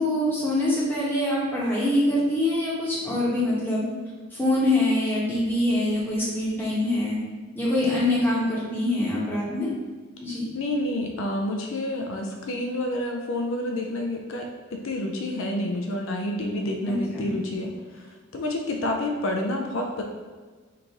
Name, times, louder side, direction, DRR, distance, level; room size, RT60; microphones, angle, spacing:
voice 1, 0.0-3.9 4.3-7.2 7.5-9.7 10.2-10.4 16.9-17.3, left 1 dB, 10° left, -6 dB, 1.0 m, -24 dB
voice 2, 10.5-20.0, left 1 dB, 65° left, 2 dB, 0.4 m, -29 dB
4.8 x 2.6 x 3.5 m, 1.5 s
head